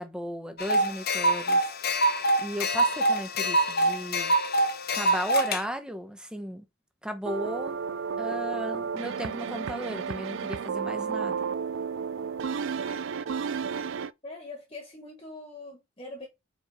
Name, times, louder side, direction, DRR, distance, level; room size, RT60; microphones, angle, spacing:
voice 1, 0.0-1.6 2.4-4.3 4.9-6.6 7.0-7.8 8.2-11.5, equal, 5° right, 0.9 m, -35 dB
sound 1, 0.6-5.6, right 1 dB, 50° left, 1.0 m, -25 dB
sound 2, 7.2-14.1, right 6 dB, 60° right, 0.4 m, -32 dB
voice 2, 14.2-16.3, left 2 dB, 25° left, 1.4 m, -42 dB
5.2 x 4.5 x 4.9 m
head